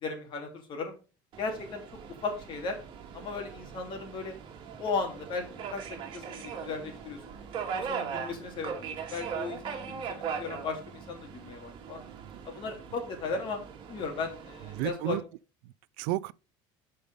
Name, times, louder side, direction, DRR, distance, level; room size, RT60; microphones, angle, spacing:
voice 1, 0.0-1.0 1.4-1.8 2.2-2.8 3.1-4.3 4.8-7.2 7.7-12.0 12.4-13.6 13.9-15.2, left 4 dB, 45° left, 2.6 m, -36 dB
Subway metro underground, 1.3-14.9, right 6 dB, 45° right, 1.9 m, -40 dB
voice 2, 12.0-12.4 14.7-15.2 15.6-16.3, right 16 dB, 80° right, 0.4 m, -33 dB
6.7 x 5.3 x 5.2 m
cardioid pair, 130°, 11 cm